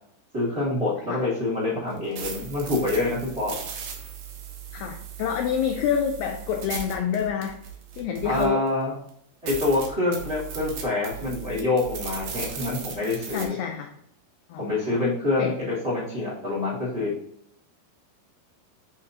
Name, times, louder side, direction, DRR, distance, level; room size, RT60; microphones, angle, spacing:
voice 1, 0.3-3.6 8.2-8.9 9.4-13.5 14.6-17.1, left 2 dB, 20° right, -8 dB, 1.9 m, -26 dB
sound 1, 1.9-8.7 9.1-9.2 9.5-13.4, right 7 dB, 65° right, 2.1 m, -37 dB
voice 2, 4.7-7.6 8.0-8.6 13.3-13.9 14.5-15.1 15.4-15.5, left 8 dB, 90° left, 4 dB, 2.0 m, -28 dB
10.5 x 3.7 x 2.8 m, 0.71 s
omnidirectional pair, 4.8 m